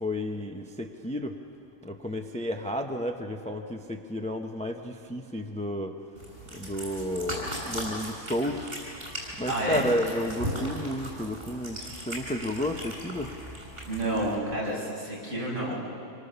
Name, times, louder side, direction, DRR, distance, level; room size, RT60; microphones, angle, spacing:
voice 1, 0.0-1.3 1.8-5.9 6.5-8.7 9.4-11.8 12.1-13.3, left 1 dB, 5° left, 4 dB, 0.9 m, -31 dB
Cat, 6.2-14.4, equal, 40° right, 6.5 m, -38 dB
voice 2, 9.5-9.8 13.9-15.7, right 1 dB, 55° right, -6 dB, 7.4 m, -29 dB
26.5 x 24.5 x 6.9 m, 2.5 s
omnidirectional pair, 1.5 m